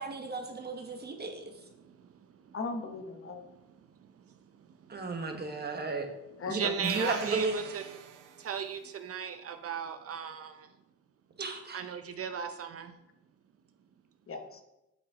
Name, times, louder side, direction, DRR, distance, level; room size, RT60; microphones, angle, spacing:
voice 1, 0.0-1.6 4.9-6.1 6.5-7.8 11.4-11.8, right 3 dB, 35° right, 4 dB, 1.3 m, -34 dB
voice 2, 2.5-3.5 6.4-7.0 14.3-14.6, left 3 dB, 45° left, 5 dB, 1.1 m, -38 dB
voice 3, 6.5-7.8 8.4-10.7 11.7-12.9, right 7 dB, 50° right, 8 dB, 0.6 m, -36 dB
sound 1, 6.8-8.7, right 8 dB, 80° right, 0.8 m, -43 dB
8.0 x 6.0 x 3.7 m, 0.92 s
cardioid pair, 90°, 30 cm